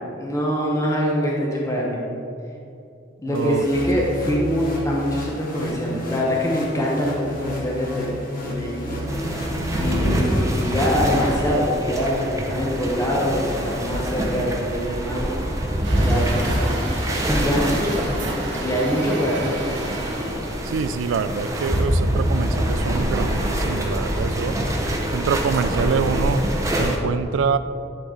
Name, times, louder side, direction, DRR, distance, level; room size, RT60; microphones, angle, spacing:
voice 1, 0.2-2.0 3.2-9.0 9.8-15.4 16.0-16.8 17.1-17.9 18.6-19.6, equal, 15° left, -3 dB, 0.8 m, -24 dB
sound 1, 3.3-11.5, left 1 dB, 50° left, 1.1 m, -31 dB
voice 2, 3.3-3.6 3.9-4.1 20.7-24.6 25.1-26.4 26.8-27.6, right 5 dB, 85° right, 12 dB, 0.3 m, -25 dB
sound 2, 9.1-27.0, equal, 15° right, 0.7 m, -25 dB
Truck, 15.8-20.7, right 1 dB, 70° right, 1.3 m, -31 dB
10.0 x 4.0 x 3.7 m, 2.6 s
head